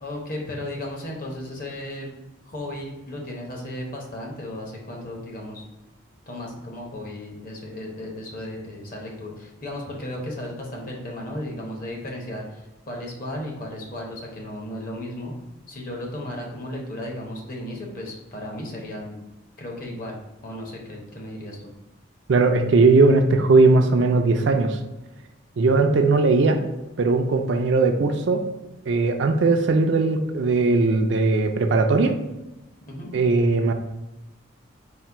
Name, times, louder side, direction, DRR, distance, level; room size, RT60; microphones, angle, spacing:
voice 1, 0.0-2.1 2.5-5.6 6.3-15.4 15.7-19.2 19.6-20.2 20.4-21.6 27.5-27.7 32.9-33.1, left 1 dB, 40° left, -1 dB, 0.9 m, -35 dB
voice 2, 22.3-24.8 25.6-26.6 27.0-28.4 28.9-32.2 33.1-33.7, right 3 dB, 60° right, 6 dB, 0.4 m, -19 dB
4.1 x 2.2 x 4.5 m, 0.99 s
head